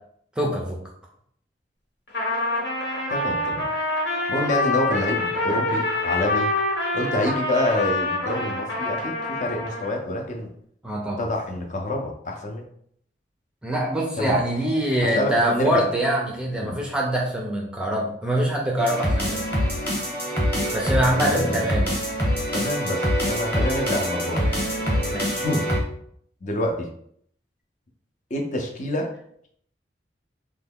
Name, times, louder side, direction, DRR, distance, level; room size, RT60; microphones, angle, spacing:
voice 1, 0.4-0.8 10.8-11.3 13.6-19.5 20.7-22.0 25.1-25.4, right 1 dB, 5° right, -1 dB, 0.5 m, -24 dB
Trumpet, 2.1-10.0, left 2 dB, 90° left, 1.2 m, -26 dB
voice 2, 3.1-3.7 4.3-6.5 6.9-10.5 11.2-12.6 14.2-14.4 15.0-15.9 16.6-16.8 21.3-21.6 22.5-24.5 25.4-25.6 26.4-26.9 28.3-29.1, left 1 dB, 40° left, 1 dB, 0.5 m, -27 dB
sound 1, 18.8-25.8, equal, 10° left, 0.9 m, -25 dB
3.2 x 2.2 x 3.5 m, 0.66 s
head